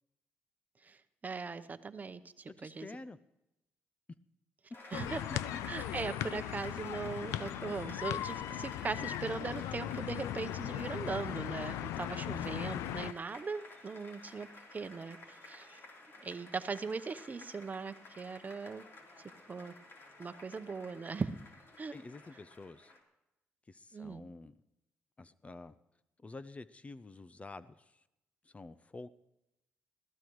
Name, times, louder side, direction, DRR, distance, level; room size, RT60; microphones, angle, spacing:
voice 1, 0.8-2.9 4.9-15.8 16.2-18.8 19.5-19.7 20.2-21.3 21.8-21.9 23.9-24.2, right 4 dB, 35° right, 11 dB, 0.8 m, -40 dB
voice 2, 2.6-3.2 21.9-22.9 23.7-24.5 25.2-25.8 26.2-28.0 28.4-29.1, left 3 dB, 25° left, 15 dB, 0.5 m, -49 dB
Applause, 4.7-23.0, left 2 dB, 50° left, 3.6 m, -53 dB
sound 1, 4.9-13.1, left 12 dB, 90° left, 0.4 m, -38 dB
21.0 x 15.0 x 3.1 m, 0.90 s
cardioid pair, 75°, 5 cm